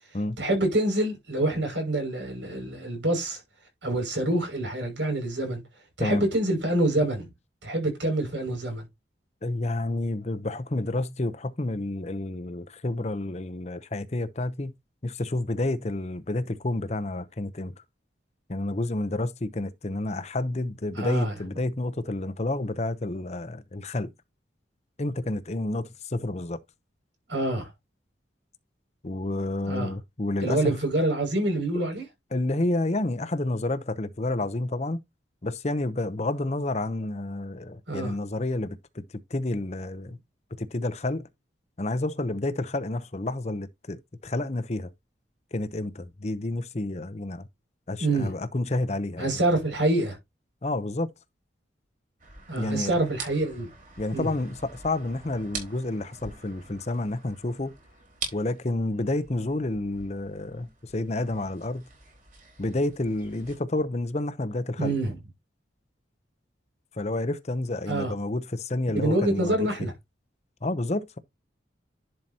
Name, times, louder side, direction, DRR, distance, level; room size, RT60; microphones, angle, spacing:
voice 1, 0.4-3.4 3.8-5.6 6.0-7.3 7.6-8.8 21.0-21.3 27.3-27.7 29.6-29.9 30.4-32.0 37.9-38.1 48.0-48.3 49.2-50.2 52.5-53.7 54.1-54.3 64.8-65.1 67.9-68.1 68.9-69.9, right 1 dB, 80° right, 6.3 m, -26 dB
voice 2, 9.4-14.7 15.0-17.7 18.5-24.1 25.0-26.6 29.0-30.6 32.3-35.0 35.4-39.0 39.3-40.2 40.6-41.3 41.8-44.9 45.5-47.5 47.9-49.3 50.6-51.1 52.6-53.0 54.0-57.7 58.3-61.9 62.6-64.9 67.0-69.6 70.6-71.2, left 2 dB, 35° left, 0.7 m, -29 dB
sound 1, 52.2-63.6, right 4 dB, 45° right, 4.0 m, -44 dB
11.0 x 5.7 x 2.9 m
head